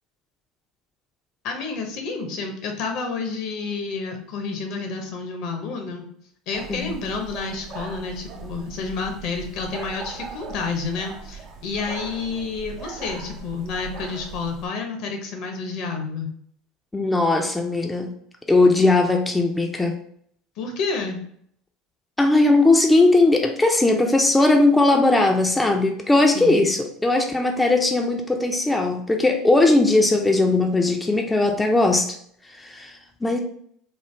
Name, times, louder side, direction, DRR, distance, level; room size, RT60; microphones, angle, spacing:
voice 1, 1.4-6.0 6.5-16.3 20.6-21.2 26.3-26.6, left 4 dB, 60° left, 3 dB, 0.7 m, -30 dB
sound 1, 6.5-14.7, right 5 dB, 50° right, 0.5 m, -39 dB
voice 2, 16.9-18.1 18.5-19.9 22.2-32.2 32.5-33.4, left 2 dB, 10° left, 3 dB, 0.4 m, -19 dB
3.1 x 2.0 x 3.2 m, 0.65 s
hypercardioid pair, 80°, 0 cm